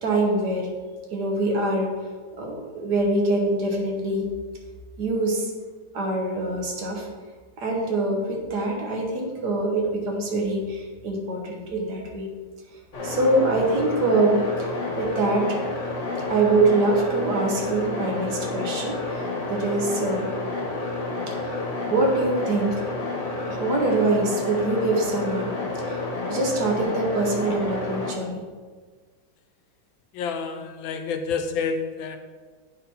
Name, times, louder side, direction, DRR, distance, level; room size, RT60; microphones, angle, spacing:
voice 1, 0.0-0.7 1.1-1.9 2.4-4.3 5.0-5.5 5.9-7.1 7.6-12.3 13.0-14.7 15.0-15.6 16.3-20.3 21.3-21.5 21.9-22.8 23.5-25.5 25.8-26.0 26.3-28.4, right 2 dB, 60° right, 0 dB, 1.5 m, -24 dB
sound 1, 12.9-28.1, left 2 dB, 40° left, 1.5 m, -30 dB
voice 2, 30.1-32.2, left 5 dB, 80° left, 7 dB, 1.3 m, -28 dB
9.3 x 4.1 x 4.1 m, 1.5 s
omnidirectional pair, 2.2 m